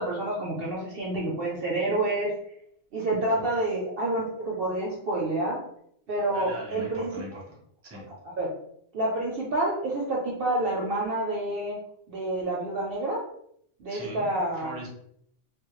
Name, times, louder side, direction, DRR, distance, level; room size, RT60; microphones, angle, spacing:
voice 1, 0.0-2.3 2.9-5.6 6.1-7.1 7.9-8.0 8.4-8.5 8.9-11.8 12.1-13.2 13.8-14.7, right 2 dB, 60° right, -3 dB, 0.6 m, -28 dB
voice 2, 6.3-7.6 7.8-8.1 13.9-14.3 14.5-14.9, right 1 dB, 15° right, -3 dB, 0.5 m, -40 dB
2.2 x 2.0 x 2.9 m, 0.69 s
omnidirectional pair, 1.3 m